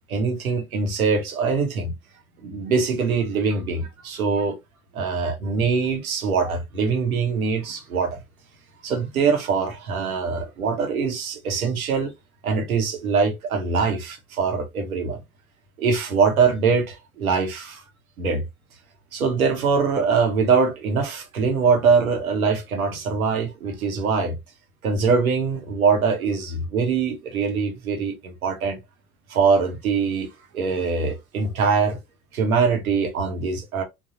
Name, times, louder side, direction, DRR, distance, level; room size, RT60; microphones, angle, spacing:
voice 1, 0.1-1.9 2.4-4.6 4.9-8.2 8.8-12.1 12.4-15.2 15.8-17.8 18.2-18.4 19.1-24.4 24.8-28.8 29.3-32.0 32.3-33.8, right 5 dB, 75° right, 1.0 m, -23 dB
3.7 x 2.3 x 2.7 m
figure-of-eight pair, 70°, 43 cm